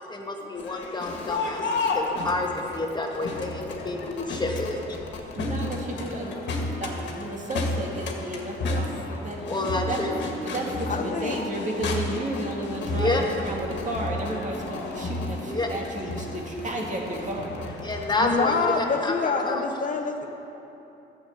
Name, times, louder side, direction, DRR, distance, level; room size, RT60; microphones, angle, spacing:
voice 1, 0.1-4.8 9.5-10.1 13.0-13.2 15.4-15.7 17.8-19.6, left 2 dB, 20° left, 1 dB, 1.4 m, -29 dB
Crowd, 0.5-18.3, left 2 dB, 65° left, 1.7 m, -32 dB
voice 2, 5.4-10.0 10.4-17.5, right 1 dB, 40° right, -1 dB, 2.0 m, -33 dB
voice 3, 10.9-11.4 18.2-20.3, left 4 dB, 40° left, 4 dB, 0.8 m, -26 dB
11.5 x 6.6 x 8.1 m, 3.0 s
cardioid pair, 90°, 20 cm